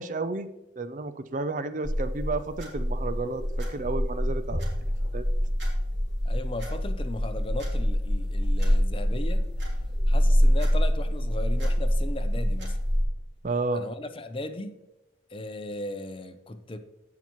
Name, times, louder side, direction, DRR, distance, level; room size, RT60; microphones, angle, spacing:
voice 1, 0.0-4.6 5.1-5.2 13.4-13.9, right 3 dB, 45° right, 11 dB, 0.4 m, -31 dB
sound 1, 1.8-13.0, equal, 80° right, 3.5 m, -25 dB
voice 2, 6.2-9.4 10.1-12.8 13.7-14.8 15.3-16.8, left 1 dB, 30° left, 9 dB, 0.6 m, -37 dB
16.5 x 5.8 x 3.0 m, 0.97 s
head